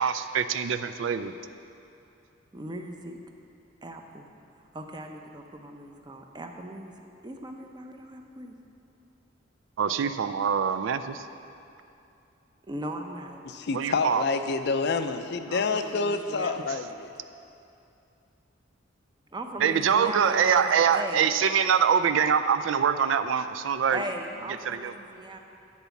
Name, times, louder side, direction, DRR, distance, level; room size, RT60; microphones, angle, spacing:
voice 1, 0.0-1.3 9.8-11.2 13.7-14.2 19.6-24.0 24.7-24.9, right 7 dB, 75° right, 11 dB, 0.4 m, -24 dB
voice 2, 2.5-3.2 3.8-4.3 4.7-8.6 12.7-13.4 15.5-16.7 19.3-21.2 23.9-25.4, right 1 dB, 25° right, 4 dB, 0.6 m, -38 dB
voice 3, 13.5-17.1, left 4 dB, 60° left, 8 dB, 0.5 m, -28 dB
11.0 x 4.2 x 7.0 m, 2.7 s
head